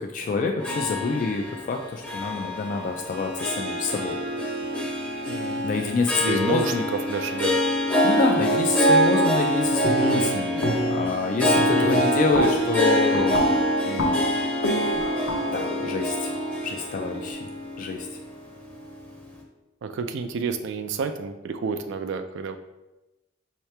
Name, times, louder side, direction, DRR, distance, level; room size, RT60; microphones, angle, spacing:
voice 1, 0.0-4.2 5.6-6.9 8.0-13.6 13.9-14.3 15.5-16.3 16.6-17.5 17.8-18.1, left 4 dB, 40° left, 2 dB, 0.3 m, -27 dB
Harp, 0.6-19.1, equal, 10° left, 0.6 m, -25 dB
voice 2, 5.3-5.6 6.2-7.6 10.0-10.4 11.7-12.1 19.8-22.6, right 5 dB, 65° right, 8 dB, 0.3 m, -30 dB
sound 1, 9.8-10.3 10.6-11.1 11.4-17.2, equal, 65° left, 0.8 m, -29 dB
5.6 x 2.9 x 3.3 m, 1.0 s
head